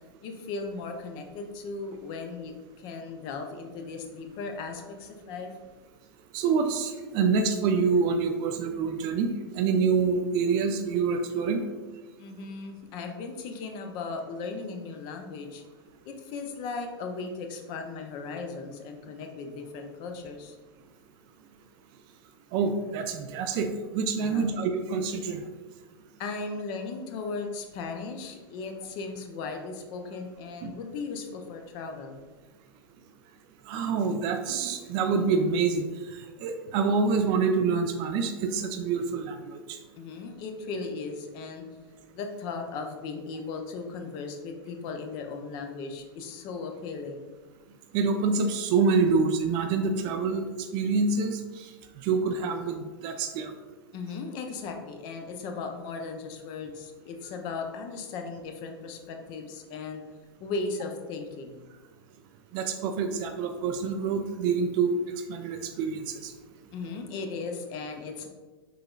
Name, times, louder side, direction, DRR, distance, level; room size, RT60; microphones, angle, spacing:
voice 1, 0.2-5.5 12.2-15.6 16.0-20.6 24.2-24.5 26.2-32.2 40.0-41.6 42.1-47.3 53.9-60.0 60.4-61.6 66.7-68.3, left 4 dB, 35° left, 4 dB, 0.6 m, -37 dB
voice 2, 6.3-11.6 22.5-25.4 30.6-30.7 33.7-39.8 47.9-50.5 50.7-51.7 52.0-53.5 62.5-65.0 65.3-66.3, right 5 dB, 35° right, 6 dB, 0.4 m, -26 dB
5.8 x 3.7 x 2.3 m, 1.3 s
figure-of-eight pair, 95°, 13 cm